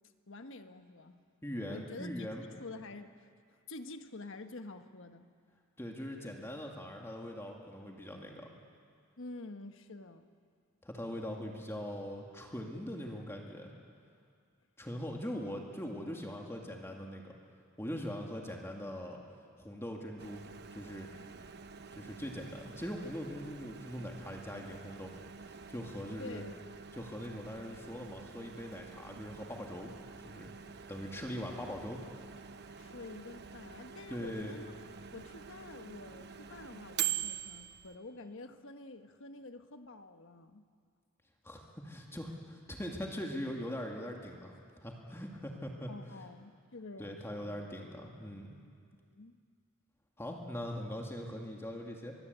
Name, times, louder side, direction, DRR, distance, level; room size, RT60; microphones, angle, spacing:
voice 1, 0.3-1.2 1.7-2.3 2.6-3.3 3.7-5.3 9.2-10.3 26.2-26.6 32.8-34.7 35.1-40.6 45.9-47.7 49.1-49.4, left 2 dB, 65° left, 8 dB, 1.3 m, -48 dB
voice 2, 1.4-2.5 5.8-8.5 10.8-13.7 14.8-17.3 17.8-19.2 19.6-20.4 20.7-21.1 21.9-25.2 25.4-26.4 26.9-29.9 30.2-30.5 30.9-32.0 34.1-34.6 41.4-45.9 47.0-48.5 50.2-52.1, equal, 10° left, 0 dB, 2.2 m, -41 dB
Microwave oven, 20.2-37.9, right 9 dB, 55° right, 0.9 m, -45 dB
24.5 x 21.0 x 8.1 m, 2.2 s
head